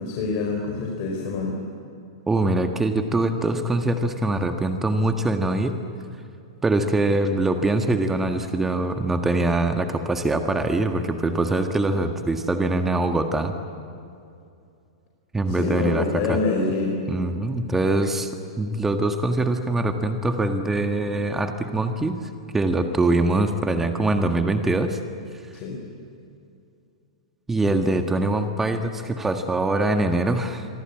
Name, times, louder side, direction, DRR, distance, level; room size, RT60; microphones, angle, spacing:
voice 1, 0.0-1.5 15.5-17.0 25.5-25.8, left 3 dB, 40° left, 0 dB, 4.8 m, -26 dB
voice 2, 2.3-5.8 6.6-13.5 15.3-16.4 17.1-18.3 18.6-22.2 22.5-25.0 27.5-30.7, right 2 dB, 10° right, 6 dB, 1.7 m, -23 dB
27.5 x 23.0 x 8.7 m, 2.5 s
figure-of-eight pair, 100°, 3 cm